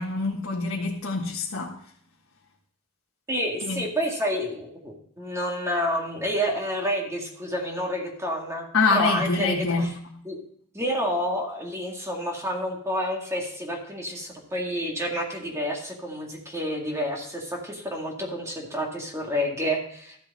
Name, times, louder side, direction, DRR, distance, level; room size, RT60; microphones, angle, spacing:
voice 1, 0.0-1.8 3.6-3.8 8.7-10.0, left 3 dB, 65° left, 1.5 m, -25 dB
voice 2, 3.3-9.9 10.3-10.4 10.7-20.2, equal, 15° right, 2.0 m, -29 dB
13.5 x 7.4 x 4.2 m
head